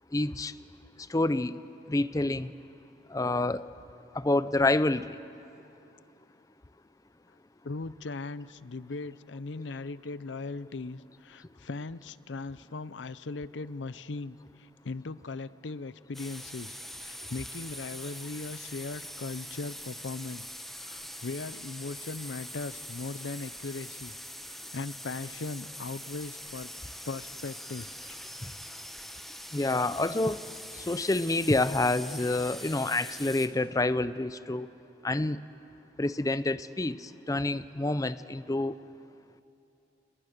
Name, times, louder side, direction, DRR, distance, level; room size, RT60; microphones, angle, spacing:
voice 1, 0.1-0.5 1.1-1.6 1.9-2.5 3.1-3.6 4.1-5.2 29.5-30.5 30.7-34.7 35.0-35.4 36.0-38.8, left 2 dB, 20° left, 14 dB, 0.5 m, -28 dB
voice 2, 7.6-20.4 20.8-24.1 24.5-26.7 27.1-27.9, left 3 dB, 90° left, 16 dB, 0.7 m, -39 dB
sound 1, 16.1-33.5, equal, ahead, 1.5 m, -43 dB
30.0 x 30.0 x 6.7 m, 2.7 s
head